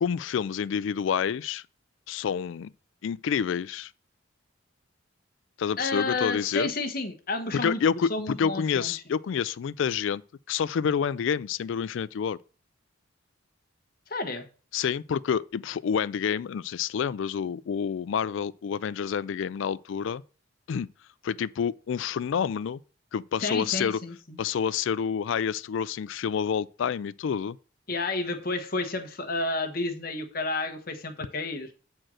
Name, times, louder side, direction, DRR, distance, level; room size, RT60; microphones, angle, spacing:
voice 1, 0.0-1.6 2.1-2.7 3.0-3.9 5.6-6.7 7.5-10.2 10.5-12.4 14.7-20.2 20.7-20.9 21.2-22.8 23.1-24.0 24.4-27.6, left 7 dB, 70° left, 0.3 m, -28 dB
voice 2, 5.8-7.8 8.1-8.9 14.1-14.4 23.4-24.4 27.9-31.7, left 3 dB, 45° left, 1.2 m, -31 dB
7.5 x 4.5 x 6.2 m
head